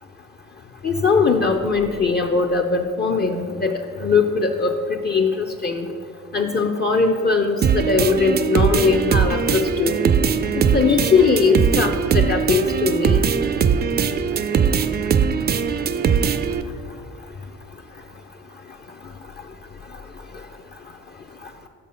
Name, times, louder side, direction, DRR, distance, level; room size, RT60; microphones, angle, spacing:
voice 1, 0.8-3.7 4.0-4.7 5.0-5.9 6.3-10.0 10.6-13.3, left 4 dB, 35° left, 3 dB, 0.5 m, -20 dB
sound 1, 7.6-16.6, right 7 dB, 30° right, 0.4 m, -20 dB
6.0 x 5.4 x 5.4 m, 2.2 s
supercardioid pair, 65°, 31 cm